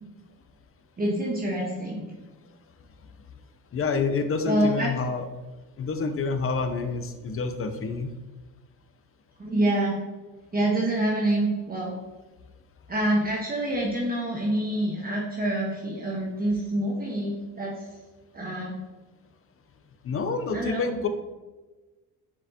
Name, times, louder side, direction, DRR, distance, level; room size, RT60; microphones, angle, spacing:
voice 1, 1.0-2.1 4.4-4.9 9.4-10.0 10.5-11.9 12.9-17.8 18.3-18.8 20.5-20.9, right 1 dB, 25° right, -4 dB, 1.2 m, -26 dB
voice 2, 3.7-5.2 5.8-8.1 20.0-21.1, left 4 dB, 35° left, 8 dB, 0.7 m, -28 dB
7.0 x 4.7 x 2.8 m, 1.2 s
cardioid pair, 105°, 38 cm